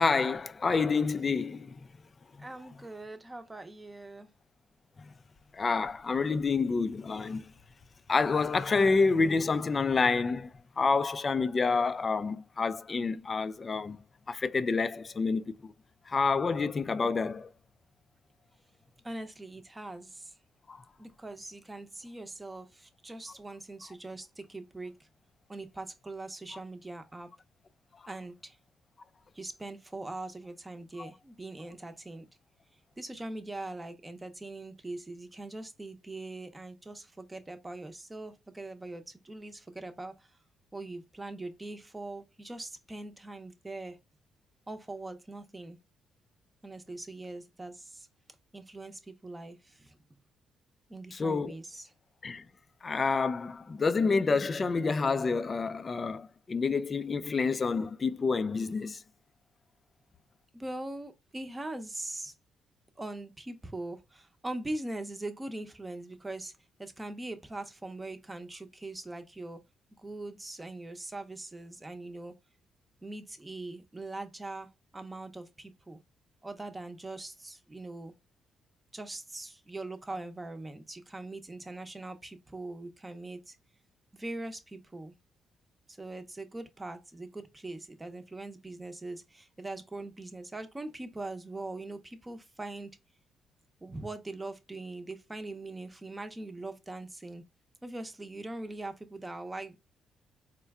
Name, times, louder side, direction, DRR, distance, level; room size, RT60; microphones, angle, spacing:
voice 1, 0.0-1.8 5.5-7.5 8.1-10.5 10.8-14.0 14.3-15.7 16.1-17.5 20.7-20.8 31.0-31.1 51.1-51.6 52.2-52.4 52.8-59.0, left 4 dB, 35° left, 0.4 m, -28 dB
voice 2, 2.4-4.3 19.0-20.3 21.0-25.1 25.5-27.3 28.1-28.6 29.3-32.3 33.0-40.3 40.7-44.0 44.7-45.8 46.6-48.1 48.5-50.0 50.9-51.9 60.5-62.3 63.0-66.5 66.8-69.6 70.0-72.3 73.0-76.0 76.4-78.1 78.9-83.6 84.1-85.1 85.9-92.9 93.8-97.4 97.8-99.8, right 2 dB, 15° right, 0.7 m, -41 dB
4.3 x 2.2 x 3.5 m
cardioid pair, 90°, 0 cm